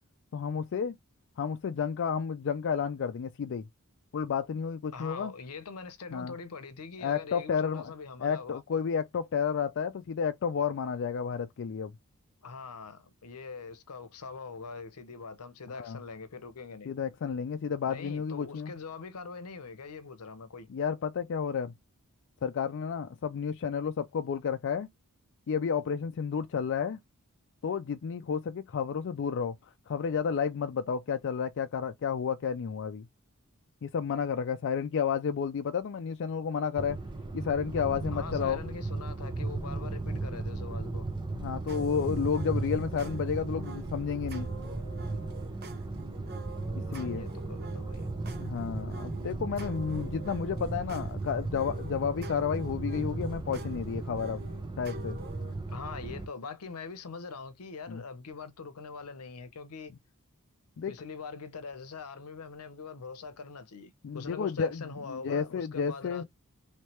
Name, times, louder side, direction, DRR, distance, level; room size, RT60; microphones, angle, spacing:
voice 1, 0.3-1.0 1.4-3.6 4.1-5.3 6.1-6.4 7.0-7.9 8.2-11.9 15.8-16.0 16.9-18.7 20.7-21.7 22.4-24.9 25.5-27.0 27.6-29.6 29.9-33.1 33.8-37.0 37.3-38.6 41.3-44.5 46.7-47.3 48.4-54.4 54.8-55.2 57.9-58.0 60.8-60.9 64.0-64.8 65.1-66.2, left 6 dB, 55° left, 0.4 m, -31 dB
voice 2, 4.9-8.6 12.4-16.9 17.8-20.7 38.1-41.1 46.9-48.1 55.7-59.9 60.9-66.2, left 4 dB, 85° left, 0.8 m, -43 dB
sound 1, 36.8-56.3, right 2 dB, 20° right, 0.6 m, -36 dB
sound 2, 41.7-55.5, right 2 dB, 45° right, 0.9 m, -47 dB
3.2 x 3.2 x 3.0 m
head